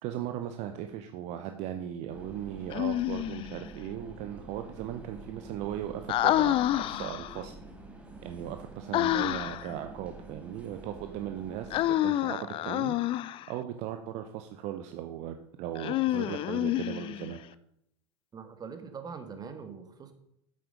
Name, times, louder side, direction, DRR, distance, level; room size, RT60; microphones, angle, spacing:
voice 1, 0.0-7.6 8.2-13.0 13.5-17.4, right 11 dB, 50° right, 7 dB, 0.7 m, -38 dB
sound 1, 2.1-11.9, right 2 dB, 10° right, 2.0 m, -47 dB
Human voice, 2.7-3.6 6.1-7.4 8.9-9.7 11.7-13.5 15.8-17.4, left 14 dB, 35° left, 0.4 m, -28 dB
voice 2, 18.3-20.1, right 6 dB, 25° right, 8 dB, 1.5 m, -42 dB
8.5 x 7.8 x 5.1 m, 0.76 s
figure-of-eight pair, 80°, 15 cm